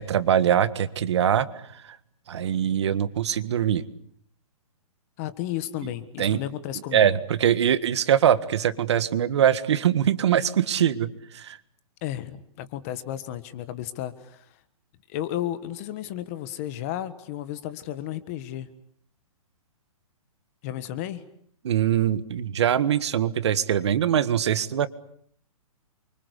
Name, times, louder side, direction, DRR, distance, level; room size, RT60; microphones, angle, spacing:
voice 1, 0.0-1.5 2.3-3.8 6.2-6.4 6.9-11.6 21.6-24.9, right 9 dB, 50° right, 14 dB, 1.7 m, -22 dB
voice 2, 5.2-7.1 12.0-14.6 15.1-18.7 20.6-21.2, left 12 dB, 25° left, 14 dB, 1.5 m, -33 dB
29.0 x 24.5 x 8.3 m, 0.64 s
hypercardioid pair, 170°, 19 cm